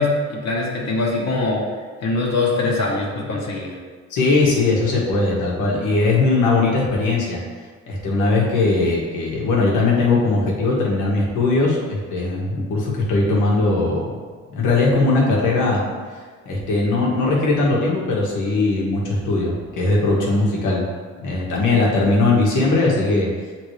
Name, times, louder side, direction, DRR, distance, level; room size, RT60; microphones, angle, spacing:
voice 1, 0.0-1.7 2.0-3.7, left 3 dB, 60° left, -3 dB, 1.3 m, -22 dB
voice 2, 4.1-7.4 7.9-14.1 14.5-15.8 16.1-20.8 21.2-23.3, left 3 dB, 85° left, -3 dB, 1.5 m, -19 dB
7.8 x 3.7 x 3.3 m, 1.5 s
cardioid pair, 90°, 30 cm